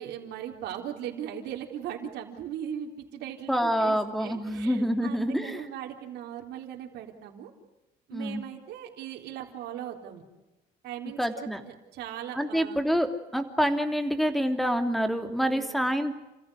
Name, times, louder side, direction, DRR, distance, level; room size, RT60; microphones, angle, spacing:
voice 1, 0.0-7.5 8.1-10.2 10.8-12.8 15.4-15.8, right 10 dB, 80° right, 1 dB, 3.8 m, -39 dB
voice 2, 3.5-5.7 8.1-8.4 11.2-11.6 12.3-16.1, equal, ahead, 6 dB, 3.0 m, -27 dB
29.5 x 16.0 x 10.0 m, 1.0 s
cardioid pair, 110°, 17 cm